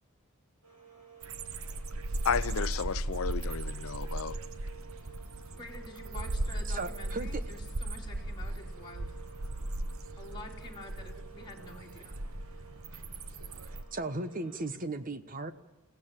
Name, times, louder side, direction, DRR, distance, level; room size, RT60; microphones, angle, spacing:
sound 1, 0.6-14.7, right 7 dB, 90° right, 7.9 m, -53 dB
sound 2, 1.2-13.8, right 1 dB, 70° right, 1.0 m, -37 dB
voice 1, 2.2-4.4, left 6 dB, 70° left, 0.6 m, -32 dB
voice 2, 5.5-9.2 10.2-12.2, left 2 dB, 20° left, 2.8 m, -48 dB
voice 3, 6.7-7.4 13.9-15.5, right 2 dB, 40° right, 1.1 m, -36 dB
29.0 x 16.0 x 7.4 m
head